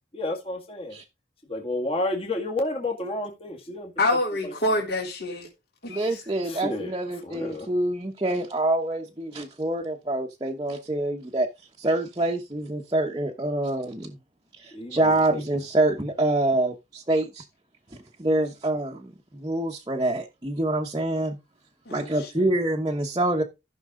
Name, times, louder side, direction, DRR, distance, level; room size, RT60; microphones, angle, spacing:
voice 1, 0.1-1.0 1.4-3.9 4.4-4.8 6.4-6.9 7.2-7.7 14.7-15.4, left 2 dB, 30° left, 2.1 m, -31 dB
voice 2, 4.0-5.5 5.8-6.2 21.9-22.5, left 1 dB, 60° left, 3.3 m, -27 dB
voice 3, 5.9-11.5 11.8-14.2 14.6-17.4 18.2-21.4 21.9-23.4, right 2 dB, 25° right, 1.0 m, -26 dB
14.5 x 6.2 x 3.7 m
head